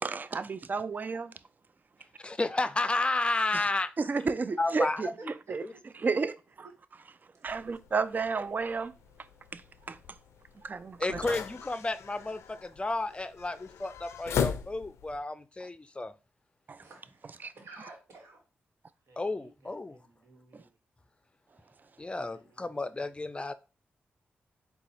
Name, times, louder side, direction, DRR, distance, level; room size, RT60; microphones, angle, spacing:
voice 1, 0.0-1.3 3.5-3.6 4.0-7.1 7.4-8.9 9.5-9.6 9.9-10.0 10.6-11.4 15.6-15.7 16.7-16.8 17.2-17.5 20.5-20.6, right 4 dB, 40° right, 0.4 m, -33 dB
voice 2, 2.2-3.9 4.6-5.0 5.6-5.7 11.0-16.1 19.2-20.0 22.0-23.5, left 2 dB, 25° left, 0.5 m, -32 dB
voice 3, 5.2-5.6 6.6-6.7 9.8-9.9 10.8-11.0 16.8-18.4 19.1-20.7 22.1-23.0, right 3 dB, 75° right, 1.3 m, -53 dB
sound 1, 7.5-15.2, left 7 dB, 85° left, 0.4 m, -38 dB
4.0 x 2.3 x 4.0 m
supercardioid pair, 45°, 5 cm